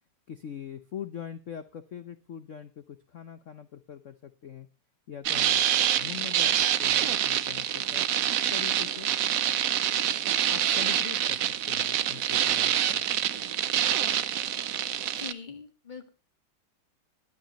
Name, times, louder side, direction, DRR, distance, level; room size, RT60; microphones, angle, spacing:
voice 1, 0.3-4.7 5.1-5.6 6.0-9.1 10.5-11.4 11.7-13.0, left 9 dB, 75° left, 11 dB, 0.7 m, -42 dB
sound 1, 5.2-15.3, right 10 dB, 75° right, 0.7 m, -26 dB
voice 2, 15.2-16.1, left 6 dB, 25° left, 8 dB, 1.6 m, -42 dB
20.5 x 9.0 x 2.9 m, 0.32 s
omnidirectional pair, 2.4 m